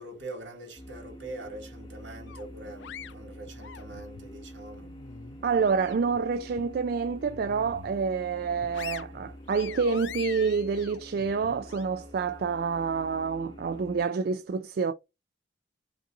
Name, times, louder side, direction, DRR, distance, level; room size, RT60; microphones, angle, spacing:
voice 1, 0.0-4.9, right 2 dB, 75° right, 2.3 m, -43 dB
sound 1, 0.8-14.1, equal, 25° left, 0.8 m, -46 dB
sound 2, 2.3-4.3 4.7-6.2 6.6-6.7 7.2-8.0 8.4-11.8, left 9 dB, 70° left, 0.4 m, -44 dB
voice 2, 5.4-14.9, right 5 dB, 55° right, 0.3 m, -28 dB
5.4 x 2.7 x 3.6 m
head